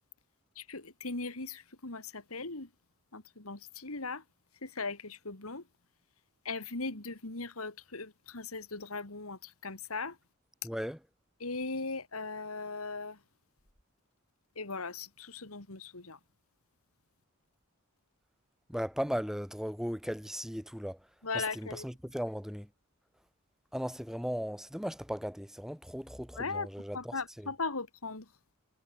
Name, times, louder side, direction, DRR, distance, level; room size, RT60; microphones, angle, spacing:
voice 1, 0.6-2.7 3.1-4.2 4.6-5.6 6.4-10.1 11.4-13.2 14.6-16.2 21.2-21.8 26.4-26.7 26.9-28.2, left 3 dB, 85° left, 2.9 m, -38 dB
voice 2, 10.6-11.0 18.7-21.0 21.3-22.7 23.7-27.5, equal, ahead, 3.1 m, -37 dB
head